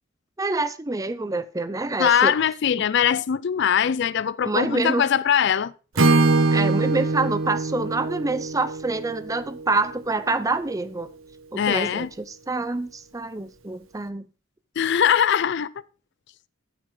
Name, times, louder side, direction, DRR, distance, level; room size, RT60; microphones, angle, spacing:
voice 1, 0.4-2.3 2.7-2.8 4.4-5.1 6.5-11.1 11.5-14.3, right 3 dB, 15° right, 0.5 m, -26 dB
voice 2, 2.0-5.7 11.6-12.1 14.8-15.7, left 8 dB, 55° left, 0.4 m, -21 dB
Acoustic guitar / Strum, 6.0-9.9, right 3 dB, 80° right, 1.3 m, -23 dB
9.0 x 8.2 x 3.8 m
head